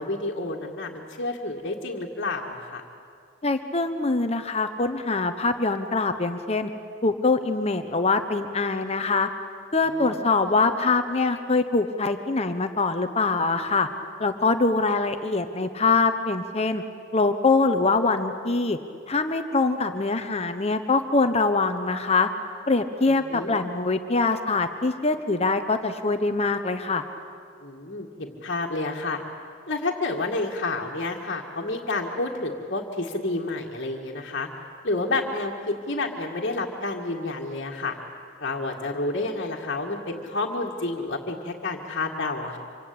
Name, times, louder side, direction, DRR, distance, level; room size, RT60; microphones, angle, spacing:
voice 1, 0.0-2.8 9.9-10.6 23.3-23.6 27.6-29.2 29.7-34.5 34.8-38.0 38.4-42.6, left 2 dB, 45° left, -3 dB, 2.0 m, -30 dB
voice 2, 3.4-6.7 7.0-9.3 9.7-13.9 14.2-16.8 17.1-18.8 19.1-22.3 22.7-27.0, left 3 dB, 30° left, 8 dB, 1.0 m, -23 dB
26.0 x 25.5 x 8.7 m, 2.4 s
head